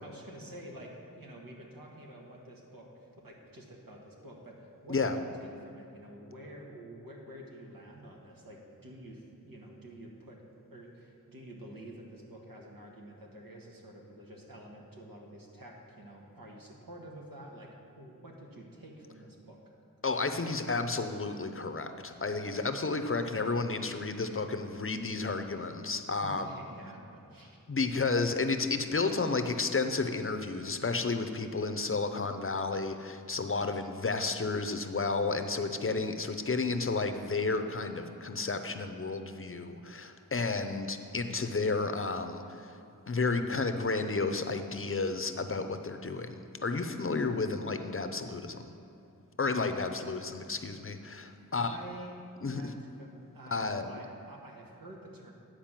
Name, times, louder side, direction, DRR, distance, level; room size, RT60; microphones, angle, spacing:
voice 1, 0.0-10.4 10.7-19.6 22.5-22.8 26.2-27.6 51.5-52.1 52.5-55.3, right 1 dB, 85° right, -1 dB, 1.5 m, -49 dB
voice 2, 20.0-26.5 27.7-42.8 43.1-48.7 49.4-51.8 52.4-52.7 53.5-53.9, left 3 dB, 40° left, 8 dB, 0.6 m, -32 dB
10.5 x 4.8 x 7.4 m, 2.8 s
wide cardioid pair, 65°, 34 cm